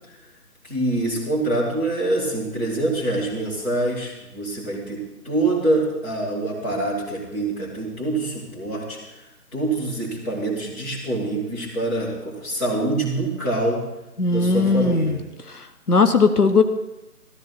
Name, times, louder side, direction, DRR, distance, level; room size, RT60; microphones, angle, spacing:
voice 1, 0.6-9.0 9.5-13.8 14.3-15.3, right 2 dB, 10° left, -8 dB, 1.8 m, -25 dB
voice 2, 14.2-15.2 15.9-16.6, left 4 dB, 75° left, 8 dB, 1.1 m, -17 dB
14.0 x 14.0 x 4.2 m, 0.97 s
figure-of-eight pair, 155°, 46 cm